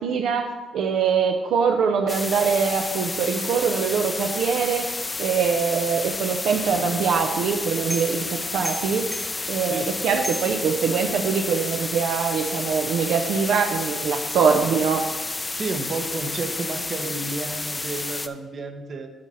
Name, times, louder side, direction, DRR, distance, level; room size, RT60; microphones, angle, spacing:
voice 1, 0.0-4.9 5.2-15.0, right 6 dB, 75° right, 4 dB, 0.6 m, -23 dB
sound 1, 2.1-18.3, left 2 dB, 20° left, 0.5 m, -31 dB
sound 2, 6.7-11.4, equal, ahead, 1.2 m, -39 dB
voice 2, 15.5-19.1, right 3 dB, 45° right, 6 dB, 1.0 m, -31 dB
7.8 x 4.2 x 6.9 m, 1.2 s
cardioid pair, 90°, 0 cm